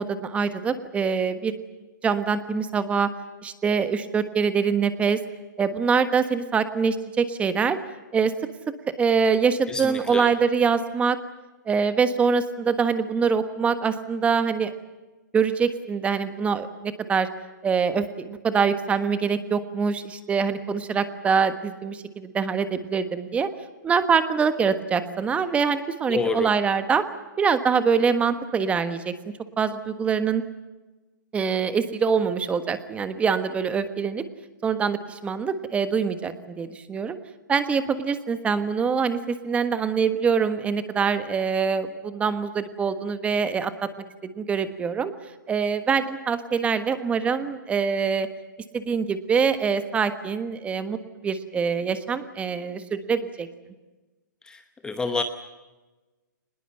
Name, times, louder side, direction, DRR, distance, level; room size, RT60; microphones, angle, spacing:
voice 1, 0.0-1.5 2.0-3.1 3.4-5.2 5.6-7.8 8.1-8.3 9.0-11.2 11.7-14.7 15.3-17.3 17.6-23.5 23.8-27.0 27.4-29.1 29.6-30.4 31.3-34.2 34.6-37.2 37.5-43.9 44.2-45.1 45.5-48.3 48.7-51.0 51.2-53.5, right 6 dB, 10° right, 11 dB, 1.4 m, -24 dB
voice 2, 9.7-10.3 26.1-26.6 54.4-55.2, left 4 dB, 10° left, 8 dB, 1.0 m, -28 dB
24.0 x 20.5 x 7.9 m, 1.2 s
hypercardioid pair, 145°, 11 cm